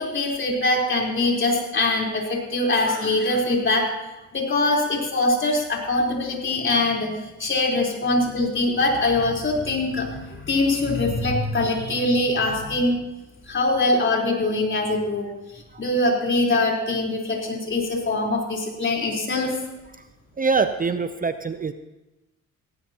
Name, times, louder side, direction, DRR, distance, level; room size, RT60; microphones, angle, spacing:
voice 1, 0.0-3.9 4.3-7.1 7.4-13.0 13.5-15.3 15.8-19.6, left 2 dB, 40° left, -1 dB, 4.1 m, -23 dB
voice 2, 20.4-21.7, right 4 dB, 30° right, 10 dB, 0.7 m, -23 dB
17.5 x 17.5 x 3.0 m, 1.0 s
cardioid pair, 90°, 30 cm